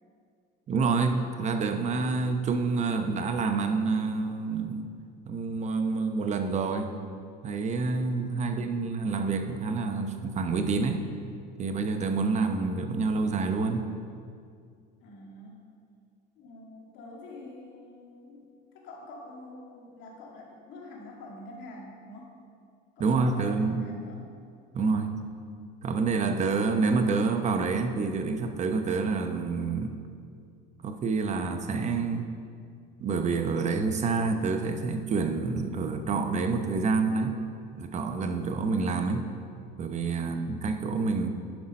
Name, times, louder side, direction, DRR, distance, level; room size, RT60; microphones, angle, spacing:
voice 1, 0.7-4.9 5.3-7.0 7.4-11.1 11.6-13.9 23.0-23.9 24.7-25.2 25.8-30.0 30.8-32.3 33.0-37.4 37.7-39.3 39.8-41.3, right 4 dB, 35° right, 6 dB, 0.8 m, -28 dB
voice 2, 8.4-8.9 15.0-15.7 16.4-18.5 18.7-22.3 23.0-24.3 40.1-40.6, left 2 dB, 65° left, -2 dB, 2.2 m, -46 dB
10.5 x 5.7 x 5.3 m, 2.3 s
cardioid pair, 115°, 21 cm